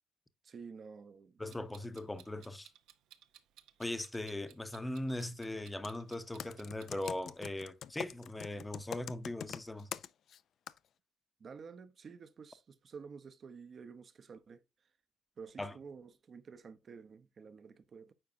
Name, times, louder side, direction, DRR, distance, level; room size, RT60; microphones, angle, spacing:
voice 1, 0.4-1.4 11.4-14.6 15.4-18.1, right 5 dB, 50° right, 0.8 m, -51 dB
voice 2, 1.4-2.7 3.8-9.9 15.6-15.8, left 1 dB, 15° left, 0.8 m, -39 dB
Clock, 1.5-7.2, right 11 dB, 85° right, 0.7 m, -60 dB
Computer keyboard, 5.7-6.0 6.4-10.4 10.7-10.8, left 9 dB, 65° left, 0.4 m, -43 dB
8.9 x 4.7 x 2.7 m
supercardioid pair, 70°, 0 cm